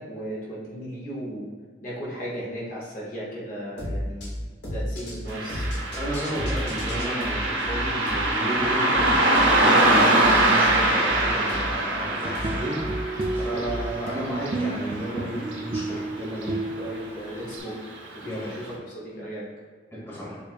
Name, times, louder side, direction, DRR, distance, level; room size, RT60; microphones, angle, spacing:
voice 1, 0.0-1.5 1.8-4.3 4.7-5.6 13.5-13.6 16.8-17.8 18.2-19.5, right 1 dB, 45° left, -6 dB, 0.8 m, -36 dB
sound 1, 3.8-14.1, equal, 80° left, 1.2 m, -33 dB
Car passing by, 5.3-16.1 16.4-16.5 17.4-17.6 18.1-18.2 18.7-18.8, right 1 dB, 85° right, 0.7 m, -24 dB
voice 2, 5.9-16.6 18.2-18.5 19.9-20.4, equal, 15° left, -7 dB, 1.0 m, -33 dB
sound 2, 12.0-17.6, right 2 dB, 30° right, 0.3 m, -32 dB
6.7 x 2.4 x 2.3 m, 1.6 s
head